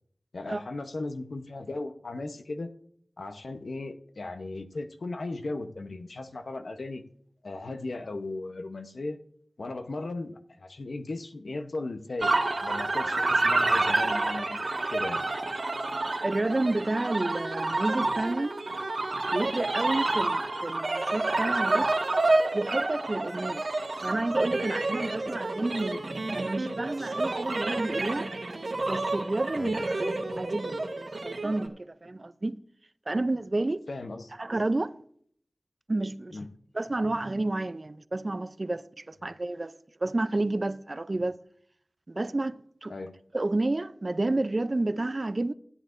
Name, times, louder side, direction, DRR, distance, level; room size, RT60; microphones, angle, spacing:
voice 1, 0.3-2.7 3.2-7.0 7.4-9.2 9.6-14.6 14.9-15.2 25.2-25.4 29.6-29.7 33.9-34.3 36.3-36.5 42.9-43.1, left 2 dB, 85° left, 0.9 m, -37 dB
sound 1, 12.2-31.7, right 2 dB, 75° right, 1.6 m, -29 dB
voice 2, 16.2-18.5 19.3-21.9 22.5-23.6 24.0-26.0 26.3-28.3 28.9-32.6 33.1-33.8 34.4-34.9 35.9-36.4 36.7-39.7 40.0-41.3 42.1-42.9 43.3-45.5, right 2 dB, 45° right, 0.5 m, -30 dB
16.5 x 9.8 x 2.6 m
wide cardioid pair, 50°, 0 cm